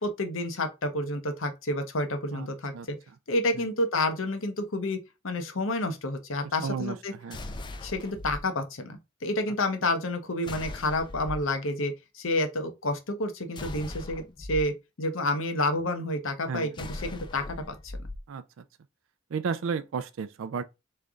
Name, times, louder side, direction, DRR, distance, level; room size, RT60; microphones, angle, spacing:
voice 1, 0.0-3.0 3.3-5.0 5.2-7.1 7.8-17.5 17.8-17.9, left 1 dB, 80° left, 0.9 m, -29 dB
voice 2, 6.6-7.5 16.5-16.9 18.3-18.6 19.3-20.6, right 5 dB, 80° right, 0.4 m, -33 dB
sound 1, 7.3-8.4 10.4-11.5 13.5-14.6 16.7-18.2, left 2 dB, 25° left, 0.4 m, -39 dB
3.8 x 3.3 x 3.6 m
head